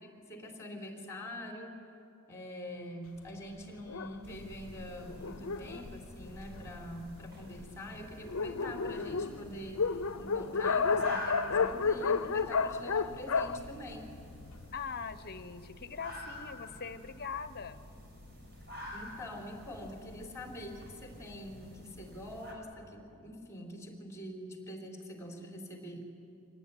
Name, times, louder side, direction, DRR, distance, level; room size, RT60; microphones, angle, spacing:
voice 1, 0.2-1.8 2.3-14.1 18.9-26.1, left 1 dB, 15° left, 2 dB, 3.9 m, -45 dB
Dog, 3.9-6.9 7.6-7.7 8.0-8.1 8.2-14.6, left 5 dB, 70° left, 0.7 m, -32 dB
sound 1, 4.2-22.5, left 1 dB, 50° right, 5.0 m, -48 dB
voice 2, 14.7-17.8, left 6 dB, 50° left, 12 dB, 1.0 m, -41 dB
24.5 x 18.5 x 9.8 m, 2.5 s
head